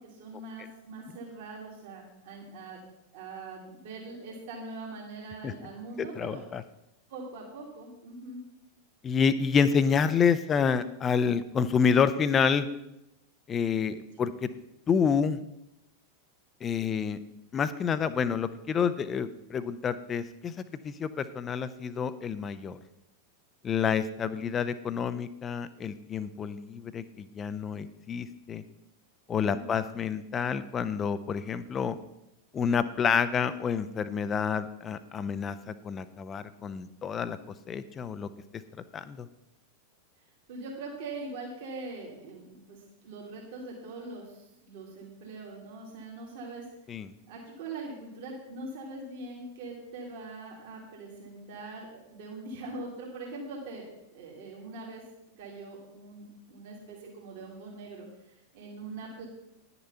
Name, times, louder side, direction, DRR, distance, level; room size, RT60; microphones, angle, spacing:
voice 1, 0.0-2.8 3.1-6.4 7.1-8.4 29.4-29.7 40.5-46.6 47.3-55.0 55.4-59.3, right 3 dB, 50° right, -2 dB, 2.6 m, -42 dB
voice 2, 6.2-6.6 9.0-12.7 13.5-14.5 14.9-15.4 16.6-17.2 17.5-20.5 20.8-22.8 23.6-28.6 29.3-32.0 32.5-35.6 35.8-37.4 37.7-38.3 38.9-39.3 46.9-47.1, left 6 dB, 25° left, 13 dB, 0.7 m, -28 dB
10.5 x 6.9 x 5.6 m, 0.86 s
figure-of-eight pair, 90°, 0 cm